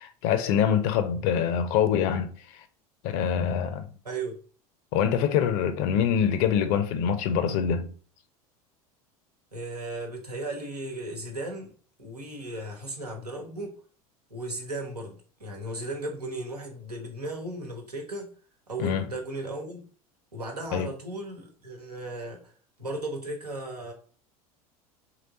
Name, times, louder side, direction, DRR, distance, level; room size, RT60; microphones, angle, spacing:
voice 1, 0.0-2.3 3.0-3.9 4.9-7.9 18.8-19.1 20.7-20.9, left 8 dB, 50° left, 0.7 m, -25 dB
voice 2, 4.0-4.4 9.5-11.7 12.0-13.8 14.3-18.3 18.7-19.8 20.3-22.5 22.8-23.9, right 2 dB, 90° right, 1.1 m, -36 dB
3.1 x 3.0 x 3.9 m
figure-of-eight pair, 75°, 19 cm